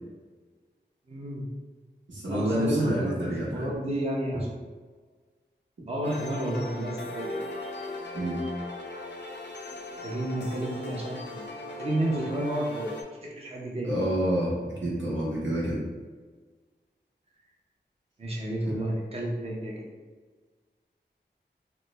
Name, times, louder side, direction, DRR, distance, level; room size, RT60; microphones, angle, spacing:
voice 1, 1.1-1.5 2.3-4.5 5.9-7.4 10.0-11.4 11.8-12.9 13.2-13.9 18.2-19.9, right 1 dB, 35° right, -3 dB, 0.6 m, -31 dB
voice 2, 2.1-3.7 8.1-8.4 13.8-15.8, right 1 dB, 85° right, -6 dB, 1.0 m, -28 dB
sound 1, 6.0-13.0, left 2 dB, 70° left, 0.5 m, -38 dB
3.1 x 2.1 x 3.2 m, 1.4 s
wide cardioid pair, 55°, 19 cm